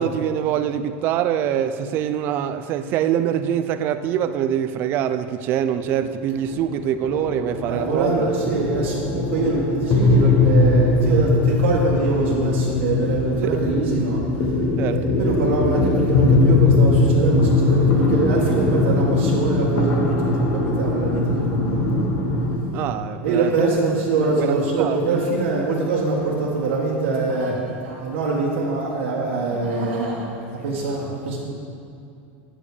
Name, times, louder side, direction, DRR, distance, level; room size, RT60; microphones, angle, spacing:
voice 1, 0.0-8.3 13.5-13.6 14.8-15.0 22.7-23.7 24.2-25.0, right 10 dB, 30° right, 11 dB, 0.3 m, -24 dB
sound 1, 5.8-22.6, left 3 dB, 35° left, 1.3 m, -20 dB
voice 2, 7.7-14.2 14.9-22.1 23.2-31.4, right 3 dB, 90° right, -4 dB, 1.4 m, -23 dB
8.7 x 5.1 x 6.6 m, 2.6 s
supercardioid pair, 170°, 6 cm